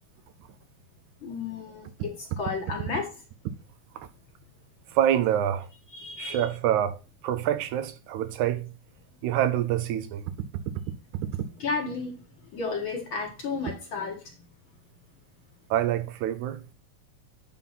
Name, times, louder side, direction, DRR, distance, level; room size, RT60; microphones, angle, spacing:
voice 1, 1.2-3.2 5.9-6.5 11.6-12.2 12.5-14.4, left 4 dB, 50° left, 1.8 m, -33 dB
voice 2, 5.0-5.7 6.2-7.0 7.2-8.7 9.2-10.2 15.7-16.6, right 11 dB, 80° right, 2.0 m, -26 dB
8.9 x 3.9 x 5.6 m
omnidirectional pair, 3.5 m